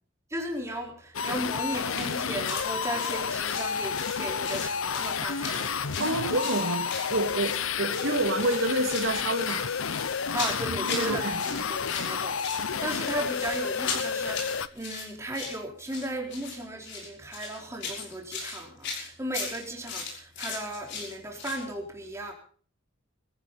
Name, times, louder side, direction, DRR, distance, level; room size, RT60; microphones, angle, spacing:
voice 1, 0.3-6.4 10.3-11.3 11.7-22.3, right 1 dB, 15° right, 4.1 m, -36 dB
sound 1, 1.1-14.7, left 6 dB, 85° left, 0.8 m, -30 dB
sound 2, 1.9-2.1 2.4-2.7 3.0-4.2 4.4-5.1 5.4-7.6 7.9-8.1 8.4-9.1 9.4-11.1 11.4-12.1 12.4-21.6, left 5 dB, 60° left, 6.1 m, -37 dB
voice 2, 6.0-9.7 10.9-11.6, right 2 dB, 75° right, 2.3 m, -28 dB
22.5 x 14.5 x 4.1 m
head